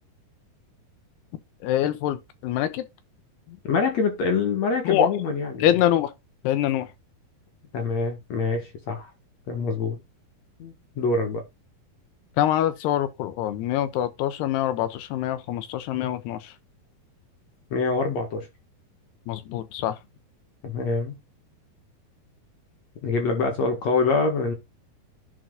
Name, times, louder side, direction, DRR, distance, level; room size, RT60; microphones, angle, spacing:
voice 1, 1.6-2.9 4.9-5.1 5.6-6.1 6.4-6.9 12.4-16.5 19.3-20.0, left 12 dB, 85° left, 3.1 m, -24 dB
voice 2, 3.5-5.7 7.7-9.1 9.5-10.0 10.6-11.4 17.7-18.5 20.6-21.2 23.0-24.5, left 4 dB, 55° left, 2.4 m, -25 dB
11.0 x 4.6 x 3.9 m
omnidirectional pair, 4.6 m